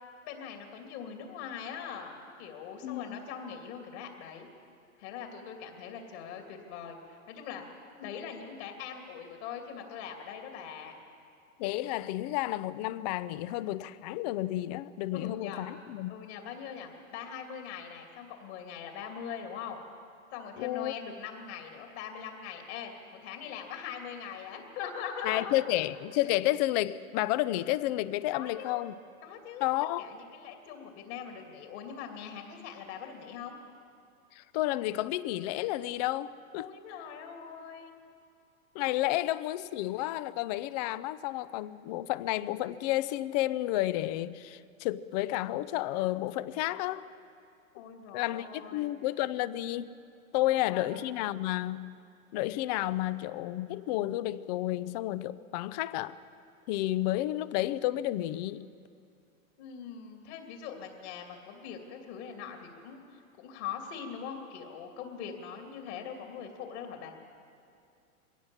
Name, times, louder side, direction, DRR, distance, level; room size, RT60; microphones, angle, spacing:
voice 1, 0.2-4.5 5.0-7.6 8.0-11.0 15.1-15.6 16.1-19.8 20.3-25.5 28.3-28.9 29.2-29.7 30.0-33.6 36.5-37.9 39.0-39.2 47.7-48.9 50.5-50.9 59.6-67.2, left 7 dB, 50° left, 3 dB, 2.8 m, -42 dB
voice 2, 2.8-3.2 11.6-16.1 20.6-20.9 25.2-28.9 29.6-30.1 34.3-36.7 38.7-47.1 48.1-49.9 50.3-51.9 52.3-56.2 56.7-58.7, left 15 dB, 30° left, 17 dB, 0.5 m, -31 dB
21.5 x 17.5 x 7.2 m, 2.5 s
hypercardioid pair, 130°, 43 cm